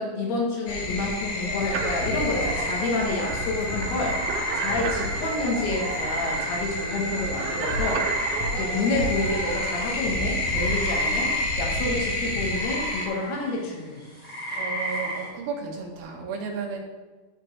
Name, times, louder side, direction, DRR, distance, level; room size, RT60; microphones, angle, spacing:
voice 1, 0.0-4.2 4.6-8.1 8.5-14.0, left 3 dB, 90° left, -1 dB, 3.2 m, -29 dB
sound 1, 0.7-13.1, left 1 dB, 70° left, 1.7 m, -29 dB
sound 2, 1.7-9.9, right 7 dB, 85° right, 2.5 m, -35 dB
sound 3, 2.4-7.1 7.3-15.3, equal, 20° left, 1.7 m, -34 dB
voice 2, 14.5-16.8, right 5 dB, 60° right, -1 dB, 1.7 m, -33 dB
10.5 x 5.0 x 3.2 m, 1.3 s
omnidirectional pair, 4.4 m